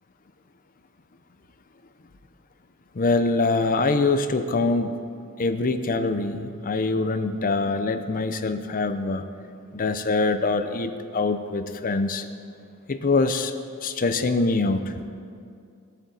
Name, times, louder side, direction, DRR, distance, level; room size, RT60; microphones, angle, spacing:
voice 1, 2.9-5.0 5.4-9.2 9.7-12.3 12.9-14.9, left 3 dB, 40° left, 9 dB, 0.6 m, -24 dB
19.5 x 8.1 x 4.0 m, 2.4 s
head